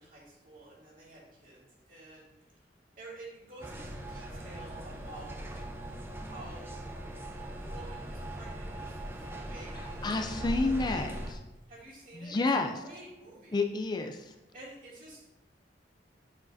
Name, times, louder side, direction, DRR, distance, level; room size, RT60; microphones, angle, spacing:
voice 1, 0.0-2.3 3.0-5.6 6.3-7.0 7.5-9.0 9.3-11.2 11.7-12.4 12.8-13.6 14.5-15.3, right 2 dB, 50° right, -5 dB, 2.4 m, -50 dB
sound 1, 3.6-11.3, right 1 dB, 15° right, 0.6 m, -40 dB
voice 2, 9.7-11.4 12.1-12.8 13.5-14.3, left 3 dB, 25° left, 5 dB, 0.4 m, -30 dB
7.3 x 6.2 x 2.6 m, 0.97 s
head